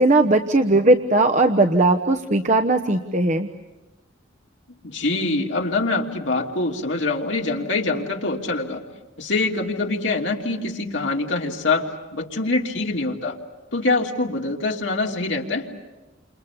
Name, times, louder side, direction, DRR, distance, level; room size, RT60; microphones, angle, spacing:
voice 1, 0.0-3.5, right 2 dB, 40° right, 6 dB, 1.1 m, -18 dB
voice 2, 4.7-8.8 9.2-13.4 13.7-15.7, left 3 dB, 70° left, 1 dB, 3.1 m, -24 dB
30.0 x 28.0 x 7.2 m, 1.1 s
head